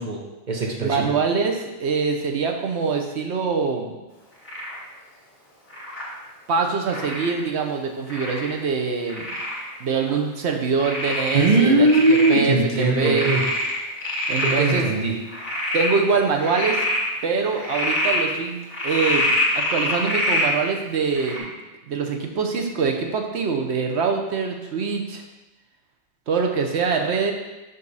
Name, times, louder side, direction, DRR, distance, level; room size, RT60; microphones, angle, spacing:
voice 1, 0.0-1.1 11.3-13.5 14.4-15.2, right 2 dB, 45° right, 0 dB, 1.0 m, -20 dB
voice 2, 0.8-4.0 6.5-9.3 9.8-13.3 14.3-14.9 15.7-16.8 17.2-21.5 21.9-25.2 26.3-27.3, right 5 dB, 70° right, 3 dB, 1.1 m, -24 dB
Frog, 4.5-4.8 5.7-6.1 6.9-7.3 8.1-8.6 9.1-9.6 10.1-10.2 10.8-12.4 12.7-14.8 15.3-15.9 16.4-17.0 17.5-18.2 18.7-20.5 21.2-21.4, left 1 dB, 40° left, 1.7 m, -25 dB
5.4 x 5.3 x 4.0 m, 1.1 s
omnidirectional pair, 1.2 m